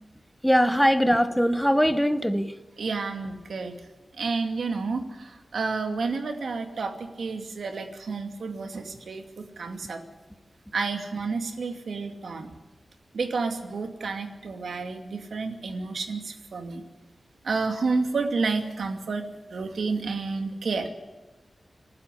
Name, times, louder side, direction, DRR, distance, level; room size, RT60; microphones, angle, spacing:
voice 1, 0.4-2.5, equal, ahead, 1.0 m, -21 dB
voice 2, 2.8-3.7 4.2-10.0 10.7-12.5 13.1-16.8 17.4-19.2 19.5-20.9, right 4 dB, 90° right, 2.5 m, -30 dB
24.5 x 12.5 x 9.8 m
wide cardioid pair, 100°, 0 cm